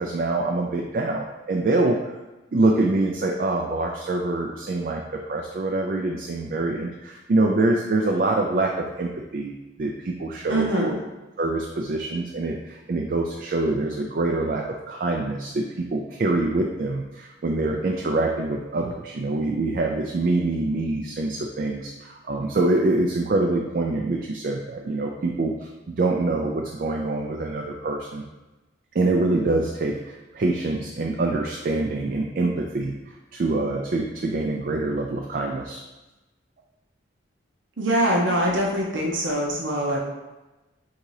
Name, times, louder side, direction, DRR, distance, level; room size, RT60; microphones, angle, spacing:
voice 1, 0.0-2.1 2.5-10.9 11.4-28.2 28.9-33.0 33.3-35.8, right 2 dB, 50° right, 1 dB, 0.4 m, -25 dB
voice 2, 10.5-11.0 37.8-40.0, right 1 dB, 80° right, -2 dB, 0.8 m, -23 dB
3.8 x 2.8 x 4.7 m, 1.1 s
head